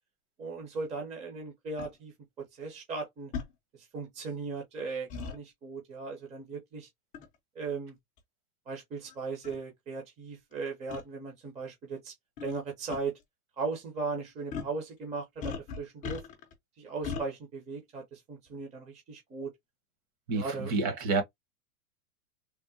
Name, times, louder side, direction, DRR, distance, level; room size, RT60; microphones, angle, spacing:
voice 1, 0.4-2.1 2.6-3.3 3.9-6.9 7.5-7.9 8.7-12.1 12.4-13.2 13.6-16.2 16.8-19.5 20.3-20.7, right 4 dB, 15° right, 0.7 m, -37 dB
sound 1, 1.8-1.9 3.3-3.5 5.1-5.4 7.1-7.3 8.2-8.3 9.1-9.2 9.4-9.6 10.9-11.0 12.4-12.6 12.9-13.0 14.5-14.8 15.4-16.5 17.0-17.3, left 5 dB, 20° left, 0.5 m, -37 dB
voice 2, 20.3-21.2, right 3 dB, 40° right, 1.1 m, -29 dB
3.5 x 2.1 x 2.7 m
supercardioid pair, 150°, 44 cm